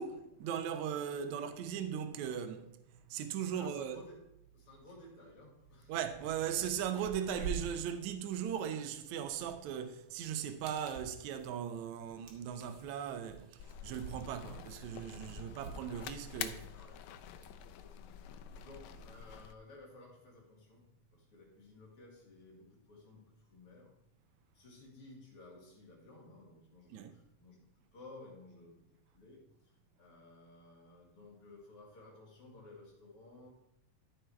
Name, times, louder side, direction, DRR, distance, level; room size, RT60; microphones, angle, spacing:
voice 1, 0.0-2.8 3.1-4.1 5.9-16.7 26.9-27.2, right 8 dB, 75° right, 2.0 m, -38 dB
voice 2, 3.5-4.2 4.5-5.9 6.4-6.5 16.7-17.2 17.6-23.9 24.5-28.8 29.1-29.5 30.0-33.5, left 2 dB, 45° left, 3.1 m, -56 dB
sound 1, 5.6-5.7 6.0-19.4, right 6 dB, 50° right, 1.7 m, -49 dB
sound 2, 13.6-19.5, left 10 dB, 75° left, 1.8 m, -47 dB
13.0 x 4.8 x 4.5 m
omnidirectional pair, 3.6 m